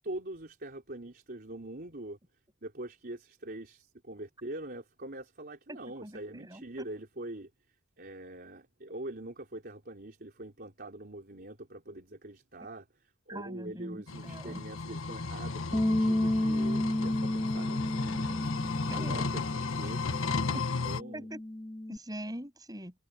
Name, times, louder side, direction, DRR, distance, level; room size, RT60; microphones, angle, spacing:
voice 1, 0.0-2.2 2.6-7.5 8.0-20.0 20.5-21.3, right 1 dB, 45° right, 4.0 m, -44 dB
voice 2, 5.7-6.9 13.3-14.6 18.9-19.2 20.5-20.6 21.1-21.4 21.9-22.9, right 1 dB, 20° right, 7.7 m, -42 dB
sound 1, 14.1-21.0, left 4 dB, 75° left, 1.4 m, -34 dB
Bass guitar, 15.7-22.0, left 1 dB, 10° left, 0.7 m, -32 dB
head